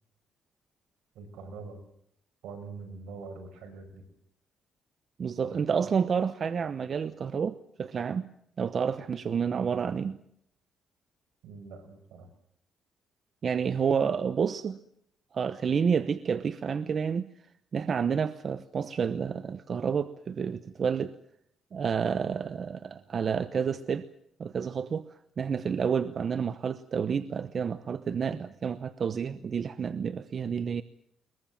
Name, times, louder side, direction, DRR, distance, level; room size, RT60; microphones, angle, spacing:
voice 1, 1.1-1.8 2.4-4.0 5.4-5.9 11.4-12.3, right 4 dB, 85° right, 5.7 m, -44 dB
voice 2, 5.2-8.3 8.6-10.2 13.4-14.8 15.3-17.3 17.7-21.2 21.7-24.1 24.4-30.8, right 6 dB, 50° right, 0.9 m, -29 dB
22.0 x 21.5 x 7.5 m
cardioid pair, 90°, 0 cm